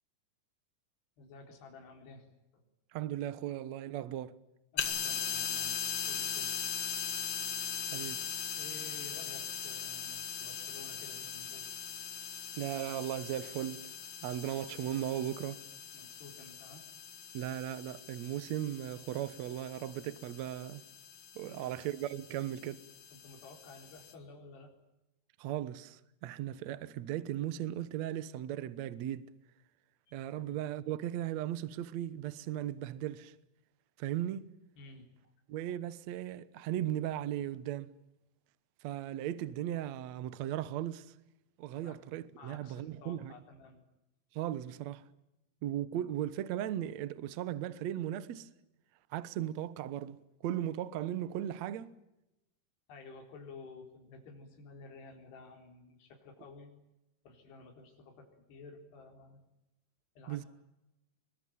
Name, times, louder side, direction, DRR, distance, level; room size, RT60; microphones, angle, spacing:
voice 1, 1.2-2.3 2.5-2.7 4.7-5.8 6.0-6.7 8.6-11.8 15.9-16.8 21.5-21.8 23.1-24.7 30.1-30.6 34.8-35.1 41.8-42.0 42.4-43.8 52.9-56.7 57.2-59.4 60.2-60.5, left 3 dB, 80° left, 6.1 m, -52 dB
voice 2, 2.9-4.3 7.9-8.2 12.6-13.8 14.2-15.6 17.3-20.8 21.3-22.8 25.4-29.3 30.1-33.3 34.0-34.5 35.5-37.9 38.8-41.1 41.6-43.3 44.3-45.0 45.6-48.5 49.1-50.2 50.4-51.9 60.3-60.4, right 12 dB, 70° right, 1.7 m, -37 dB
sound 1, 4.8-24.1, left 7 dB, 50° left, 2.1 m, -40 dB
24.5 x 22.5 x 9.3 m
omnidirectional pair, 4.7 m